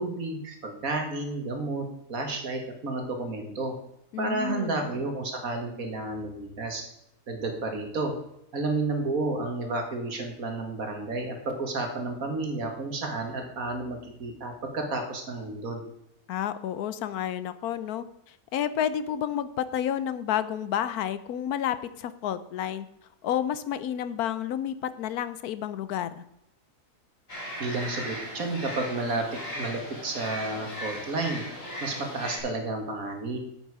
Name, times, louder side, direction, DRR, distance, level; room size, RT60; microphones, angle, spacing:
voice 1, 0.0-3.7 4.2-6.8 7.3-8.1 8.5-15.8 27.6-29.3 29.5-31.4 31.8-33.4, right 2 dB, 65° right, 4 dB, 2.1 m, -31 dB
voice 2, 4.1-4.9 16.3-22.9 23.2-26.2, left 10 dB, 75° left, 14 dB, 1.1 m, -30 dB
sound 1, 27.3-32.4, equal, 55° left, 3.3 m, -37 dB
9.4 x 8.0 x 4.8 m, 0.79 s
omnidirectional pair, 1.6 m